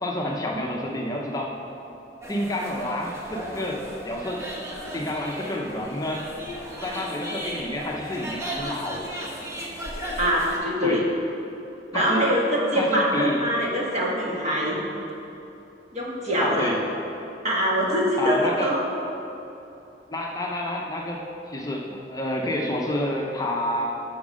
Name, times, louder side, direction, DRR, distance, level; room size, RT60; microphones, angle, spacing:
voice 1, 0.0-1.5 2.3-4.4 4.9-6.2 6.8-9.1 10.8-11.0 11.9-12.2 12.8-13.4 16.4-16.8 18.2-18.7 20.1-24.0, left 1 dB, 20° left, -1 dB, 0.7 m, -29 dB
sound 1, 2.2-10.6, equal, 15° right, 1.2 m, -35 dB
voice 2, 10.2-11.0 11.9-14.8 15.9-16.7 17.4-18.8, equal, 40° right, -4 dB, 1.6 m, -23 dB
7.7 x 6.2 x 6.3 m, 2.9 s
head